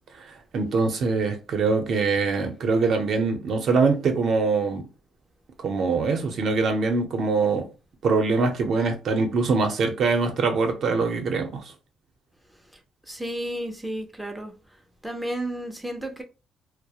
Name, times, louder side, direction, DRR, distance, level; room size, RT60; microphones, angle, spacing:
voice 1, 0.5-4.8 5.6-7.7 8.0-11.6, right 4 dB, 60° right, 0.6 m, -23 dB
voice 2, 13.1-14.5 15.0-16.2, right 1 dB, 5° right, 0.4 m, -32 dB
2.3 x 2.0 x 2.7 m
cardioid pair, 110°, 0 cm